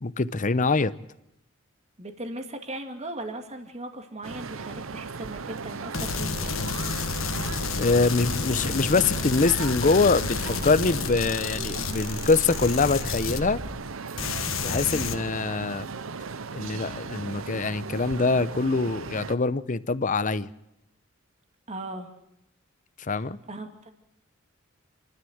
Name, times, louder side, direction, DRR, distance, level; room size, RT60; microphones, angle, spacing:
voice 1, 0.0-0.9 7.8-13.6 14.6-15.9 16.5-20.5 23.1-23.4, left 3 dB, 40° left, 0.8 m, -24 dB
voice 2, 2.0-6.3 14.9-15.2 21.7-22.1 23.1-23.7, right 1 dB, 35° right, 2.3 m, -38 dB
sound 1, 4.2-19.4, right 4 dB, 85° right, 0.8 m, -37 dB
sound 2, 5.9-13.9 14.2-15.1, left 5 dB, 85° left, 1.5 m, -30 dB
28.0 x 13.0 x 8.0 m
head